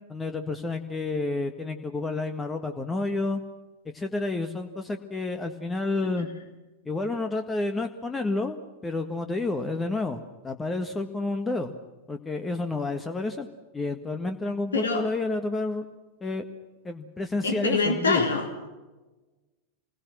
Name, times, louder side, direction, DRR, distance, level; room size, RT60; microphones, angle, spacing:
voice 1, 0.1-3.4 3.9-6.3 6.8-8.6 8.8-11.7 12.1-13.5 13.7-15.8 16.2-16.4 16.8-18.3, left 2 dB, 15° left, 7 dB, 1.6 m, -30 dB
voice 2, 14.7-15.1 17.4-18.7, left 4 dB, 70° left, 4 dB, 3.6 m, -26 dB
28.0 x 21.0 x 6.2 m, 1.2 s
figure-of-eight pair, 90°, 0 cm